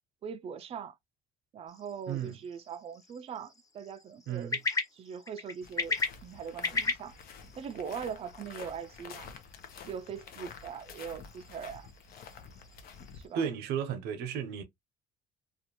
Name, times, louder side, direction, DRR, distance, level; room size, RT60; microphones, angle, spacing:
voice 1, 0.2-1.0 1.5-4.6 4.9-7.2 7.6-9.3 9.9-11.9 13.1-13.5, right 7 dB, 35° right, 0.4 m, -41 dB
sound 1, 1.7-13.3, left 4 dB, 20° left, 0.7 m, -39 dB
voice 2, 2.1-2.4 4.3-4.6 13.3-14.6, right 8 dB, 90° right, 0.7 m, -34 dB
sound 2, 5.6-13.3, left 6 dB, 65° left, 0.7 m, -49 dB
2.6 x 2.3 x 2.8 m
cardioid pair, 110°, 17 cm